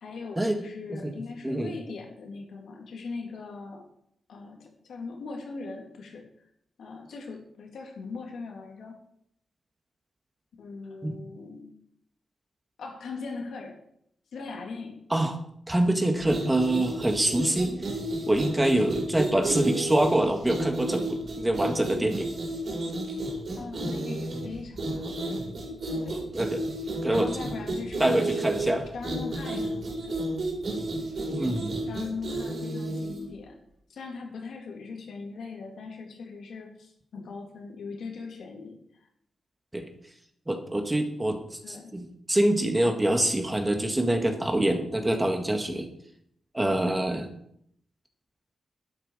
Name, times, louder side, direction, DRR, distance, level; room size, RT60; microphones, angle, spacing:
voice 1, 0.0-3.9 4.3-6.3 6.8-9.0 10.6-11.7 12.8-13.8 14.3-15.0 23.5-25.4 25.9-26.2 27.1-28.4 28.9-30.3 31.9-33.6 33.9-39.1 41.6-42.0, left 4 dB, 80° left, 1 dB, 3.1 m, -40 dB
voice 2, 15.7-17.7 18.3-22.3 26.1-26.6 27.0-27.3 28.0-28.9 31.3-31.8 39.7-39.8 40.5-41.4 41.7-45.9 46.5-47.3, right 1 dB, 15° right, 4 dB, 1.7 m, -25 dB
sound 1, 16.2-33.3, right 1 dB, 55° right, 4.3 m, -32 dB
11.5 x 10.0 x 5.0 m, 0.72 s
wide cardioid pair, 110°, 0 cm